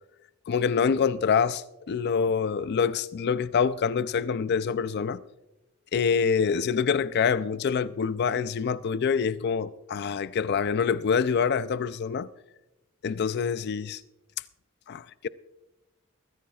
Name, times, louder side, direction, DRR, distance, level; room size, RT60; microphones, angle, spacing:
voice 1, 0.5-5.2 5.9-12.3 13.0-14.0 14.9-15.3, left 6 dB, 55° left, 0.4 m, -26 dB
22.5 x 14.5 x 2.3 m
head